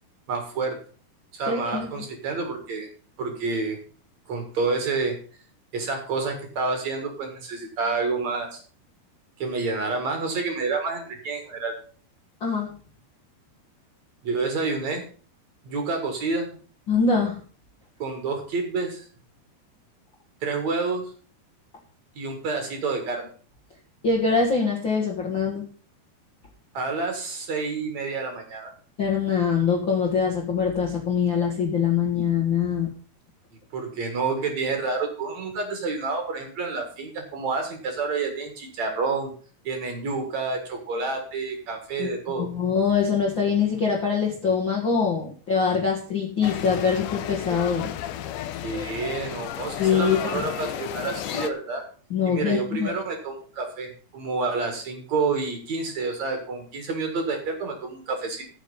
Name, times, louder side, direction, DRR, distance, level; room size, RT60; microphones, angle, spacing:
voice 1, 0.3-0.8 1.3-2.9 3.2-3.8 4.3-5.2 5.7-8.6 9.4-11.7 14.2-15.0 15.6-16.5 18.0-19.1 20.4-21.1 22.2-23.3 26.7-28.7 33.7-39.3 39.6-42.5 48.6-51.8 52.3-58.4, right 4 dB, 50° right, 4 dB, 2.6 m, -29 dB
voice 2, 1.5-1.9 12.4-12.7 16.9-17.4 24.0-25.7 29.0-32.9 42.0-42.1 42.3-47.9 49.8-50.4 52.1-52.9, left 6 dB, 50° left, -2 dB, 1.5 m, -23 dB
sound 1, 46.4-51.5, left 11 dB, 85° left, 1.8 m, -33 dB
13.5 x 6.4 x 5.5 m, 0.40 s
omnidirectional pair, 4.7 m